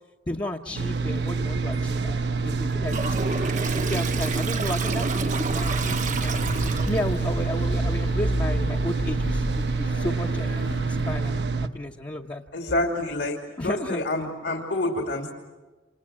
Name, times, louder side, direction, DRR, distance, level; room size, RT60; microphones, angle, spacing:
voice 1, 0.3-3.0 3.7-6.4 6.9-12.4 13.6-14.0, left 1 dB, 25° left, -1 dB, 0.9 m, -33 dB
sound 1, 0.7-11.7, right 4 dB, 65° right, 1.1 m, -27 dB
Toilet flush, 2.9-7.2, right 4 dB, 40° right, 0.9 m, -30 dB
sound 2, 5.5-11.2, equal, 90° left, 2.0 m, -32 dB
voice 2, 12.5-13.4 13.6-15.3, left 2 dB, 70° left, 1 dB, 2.8 m, -27 dB
29.0 x 27.0 x 7.5 m, 1.3 s
head